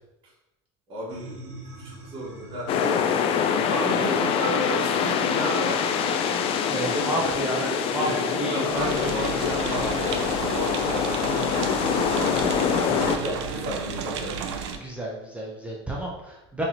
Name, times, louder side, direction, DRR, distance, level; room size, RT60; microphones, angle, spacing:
voice 1, 0.9-3.1 3.6-5.9 6.8-14.4, equal, 35° right, -6 dB, 1.5 m, -34 dB
sound 1, 1.1-14.4, right 2 dB, 60° right, 1.2 m, -44 dB
sound 2, 2.7-13.2, left 7 dB, 40° left, 0.4 m, -25 dB
voice 2, 6.7-7.6 7.9-9.6 12.9-13.1 14.8-16.6, right 1 dB, 10° right, -4 dB, 0.6 m, -31 dB
sound 3, 8.7-14.8, right 6 dB, 80° right, 0.5 m, -33 dB
3.8 x 3.0 x 2.8 m, 0.93 s
supercardioid pair, 110°, 14 cm